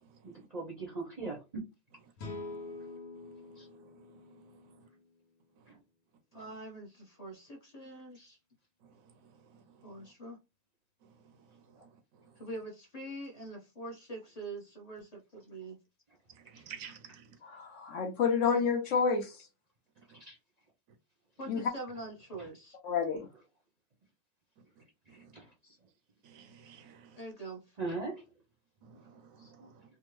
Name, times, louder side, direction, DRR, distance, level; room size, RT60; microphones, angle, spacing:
voice 1, 0.2-1.6 3.6-3.7 5.7-5.8 16.8-16.9 20.1-20.4 25.1-25.8 27.8-28.2 29.4-29.7, right 3 dB, 40° right, 0.6 m, -40 dB
sound 1, 2.2-5.5, left 2 dB, 90° left, 1.3 m, -46 dB
voice 2, 6.3-8.4 9.8-10.4 12.4-15.8 21.4-22.8 27.2-27.8, right 2 dB, 30° left, 0.8 m, -44 dB
voice 3, 16.5-17.3 20.1-20.2 26.2-27.2 29.4-29.6, right 7 dB, 75° right, 1.0 m, -49 dB
voice 4, 17.4-19.5 21.5-21.6 22.8-23.3, left 5 dB, 65° left, 0.9 m, -29 dB
3.4 x 2.1 x 3.0 m
omnidirectional pair, 1.5 m